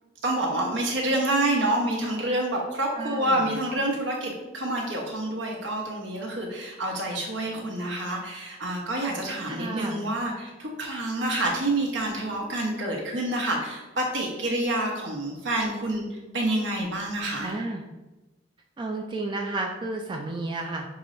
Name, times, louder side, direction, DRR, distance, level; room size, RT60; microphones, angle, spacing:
voice 1, 0.2-16.1 16.3-17.5, right 1 dB, 80° right, -1 dB, 1.1 m, -28 dB
voice 2, 3.0-3.5 9.5-10.1 17.4-17.8 18.8-20.9, right 2 dB, 25° right, 1 dB, 0.3 m, -32 dB
6.0 x 3.2 x 2.6 m, 1.1 s
head